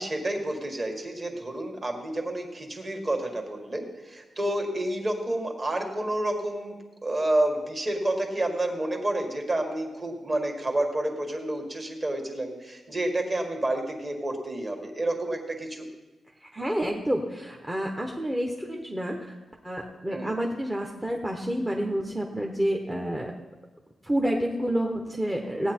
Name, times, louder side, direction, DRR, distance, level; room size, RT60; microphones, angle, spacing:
voice 1, 0.0-6.8 7.0-15.9 20.1-20.3 25.4-25.7, right 1 dB, 30° right, 3 dB, 1.8 m, -29 dB
voice 2, 16.4-19.3 19.6-23.3 24.0-25.7, equal, 10° right, 1 dB, 0.9 m, -29 dB
17.5 x 9.1 x 4.4 m, 1.1 s
wide cardioid pair, 160°, 0 cm